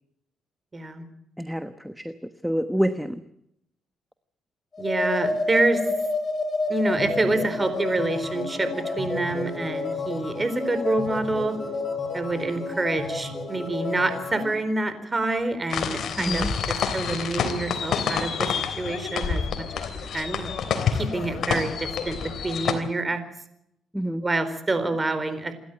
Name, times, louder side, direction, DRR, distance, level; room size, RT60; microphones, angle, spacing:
voice 1, 0.7-1.0 4.8-5.8 6.7-11.6 12.1-18.5 18.8-19.8 20.1-20.5 20.9-22.2 22.4-23.2 24.2-25.5, right 2 dB, 25° right, 11 dB, 4.2 m, -27 dB
voice 2, 1.4-3.2 16.2-16.5 23.9-24.2, equal, ahead, 10 dB, 1.2 m, -27 dB
sound 1, 4.7-14.6, left 3 dB, 35° left, 6.9 m, -30 dB
sound 2, 15.7-22.7, left 6 dB, 65° left, 3.4 m, -28 dB
28.0 x 12.5 x 8.9 m, 0.76 s
cardioid pair, 90°, 0 cm